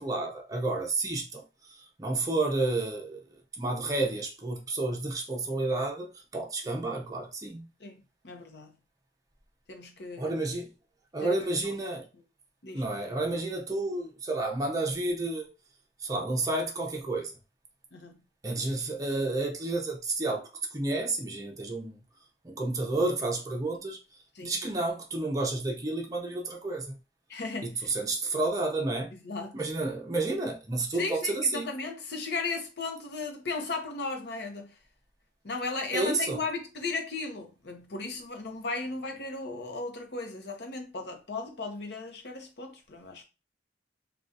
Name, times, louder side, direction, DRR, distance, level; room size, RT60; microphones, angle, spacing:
voice 1, 0.0-1.4 2.0-3.2 3.6-7.7 10.2-10.7 11.1-12.0 12.7-15.5 16.0-17.3 18.4-21.9 22.4-24.0 24.4-27.0 27.6-29.1 29.5-31.7 35.9-36.4, right 2 dB, 20° right, 0.6 m, -30 dB
voice 2, 7.8-8.7 9.7-10.3 11.2-11.5 12.6-12.9 17.9-18.2 24.4-24.6 27.3-27.9 29.1-29.6 31.0-34.7 35.4-43.2, left 3 dB, 65° left, 0.8 m, -36 dB
3.6 x 2.3 x 2.6 m
head